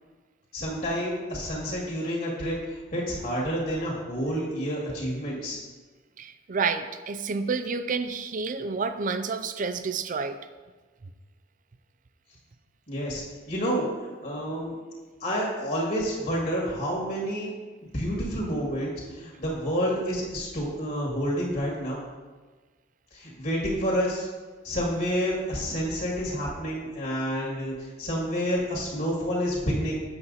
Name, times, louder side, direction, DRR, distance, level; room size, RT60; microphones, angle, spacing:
voice 1, 0.5-5.6 12.9-13.9 14.2-14.8 15.2-17.5 17.9-22.0 23.1-24.3 24.6-30.0, equal, 50° left, -3 dB, 2.0 m, -29 dB
voice 2, 6.2-10.4, right 4 dB, 45° right, 10 dB, 0.5 m, -29 dB
8.0 x 7.3 x 4.1 m, 1.3 s
head